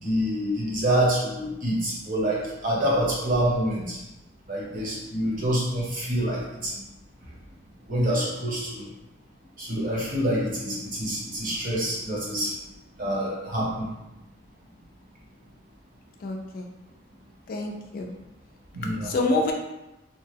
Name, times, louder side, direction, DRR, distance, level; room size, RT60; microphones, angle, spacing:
voice 1, 0.0-4.0 4.5-6.8 7.9-8.8 9.6-12.5 13.0-13.9 18.7-19.1, right 1 dB, 45° right, -5 dB, 0.9 m, -26 dB
voice 2, 16.2-16.7 17.5-18.1 19.0-19.5, left 2 dB, 50° left, 2 dB, 0.3 m, -27 dB
2.8 x 2.2 x 3.2 m, 0.96 s
head